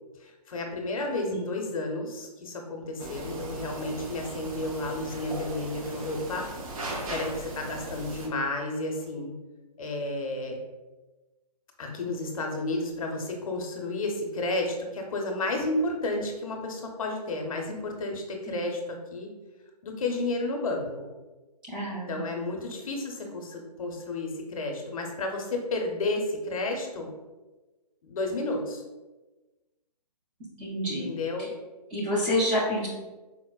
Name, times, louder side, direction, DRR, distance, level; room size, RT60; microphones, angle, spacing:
voice 1, 0.2-6.5 7.1-9.3 9.8-10.6 11.8-19.3 19.8-21.1 22.1-27.1 28.0-28.8 31.0-31.5, left 2 dB, 55° left, 2 dB, 0.6 m, -32 dB
sound 1, 3.0-8.3, right 2 dB, 55° right, 0.6 m, -38 dB
voice 2, 21.7-22.2 30.6-31.1 31.9-32.9, left 1 dB, 15° right, -7 dB, 0.4 m, -28 dB
4.0 x 2.0 x 2.2 m, 1.2 s
hypercardioid pair, 145°, 21 cm